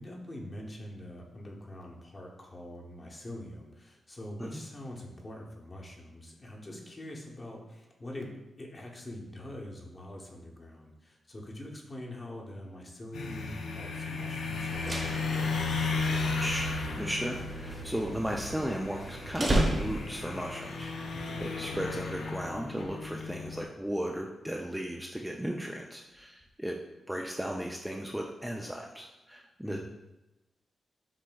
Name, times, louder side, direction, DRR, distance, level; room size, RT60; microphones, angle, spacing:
voice 1, 0.0-16.3 29.6-29.8, left 1 dB, 30° left, -1 dB, 0.8 m, -44 dB
sound 1, 13.1-23.6, left 4 dB, 85° left, 0.4 m, -35 dB
sound 2, 14.6-20.3, right 1 dB, 35° right, 0.9 m, -34 dB
voice 2, 17.0-26.8 27.1-29.8, equal, 5° right, 0 dB, 0.3 m, -35 dB
7.3 x 2.6 x 2.3 m, 0.99 s
cardioid pair, 90°, 0 cm